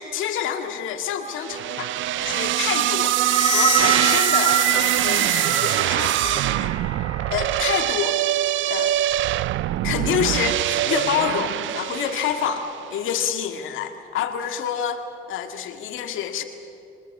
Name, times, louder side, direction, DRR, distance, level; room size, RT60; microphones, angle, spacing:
voice 1, 0.0-1.9 2.2-3.1 3.4-6.7 7.3-8.2 8.7-9.1 9.8-15.0 15.3-16.4, left 9 dB, 85° left, 6 dB, 2.0 m, -27 dB
sound 1, 1.4-12.7, right 14 dB, 75° right, 0.5 m, -22 dB
sound 2, 2.9-8.6, left 5 dB, 40° left, 3.9 m, -31 dB
23.0 x 20.0 x 8.3 m, 2.4 s
cardioid pair, 90°, 20 cm